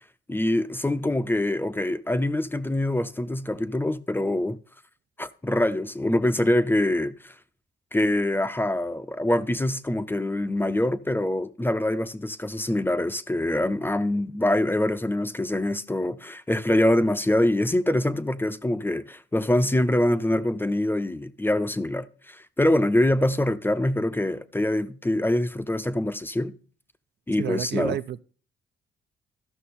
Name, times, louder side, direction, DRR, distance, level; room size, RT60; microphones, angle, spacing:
voice 1, 0.3-4.6 5.2-7.3 7.9-26.5 27.3-28.0, left 1 dB, 10° left, 0.5 m, -24 dB
voice 2, 27.4-28.2, right 10 dB, 60° right, 0.4 m, -30 dB
13.0 x 6.0 x 4.2 m
cardioid pair, 90°, 20 cm